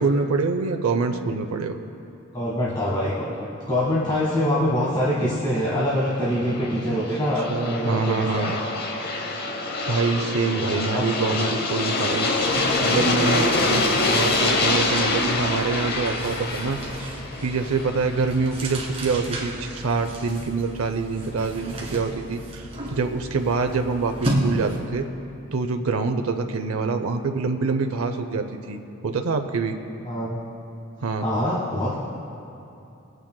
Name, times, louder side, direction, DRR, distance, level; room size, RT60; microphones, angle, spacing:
voice 1, 0.0-1.8 7.5-8.6 9.9-12.3 12.8-17.2 17.4-25.1 25.5-28.8 29.0-29.8 31.0-31.3, right 4 dB, 75° right, 6 dB, 0.5 m, -25 dB
voice 2, 2.3-8.6 10.2-11.4 30.0-30.4 31.2-32.0, equal, 20° left, -6 dB, 1.4 m, -25 dB
Aircraft, 6.2-19.1, left 2 dB, 45° left, 0.8 m, -25 dB
sound 1, 11.1-11.3 11.6-25.0, right 1 dB, 25° right, 1.5 m, -34 dB
23.5 x 8.9 x 2.2 m, 2.8 s
head